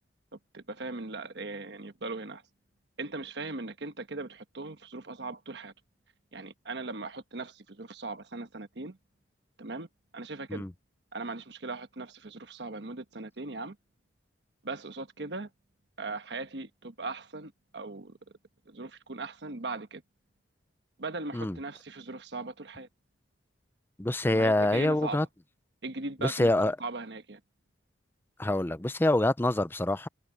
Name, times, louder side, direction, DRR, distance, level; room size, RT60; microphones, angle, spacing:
voice 1, 0.3-2.4 3.0-5.7 6.3-9.0 9.6-9.9 10.1-10.6 11.1-13.8 14.6-15.5 16.0-18.2 18.7-20.0 21.0-22.9 24.2-25.3 25.8-26.5 26.8-27.4, right 3 dB, 65° right, 1.2 m, -39 dB
voice 2, 24.0-25.3 26.2-26.7 28.4-30.1, left 1 dB, 10° left, 0.5 m, -26 dB
head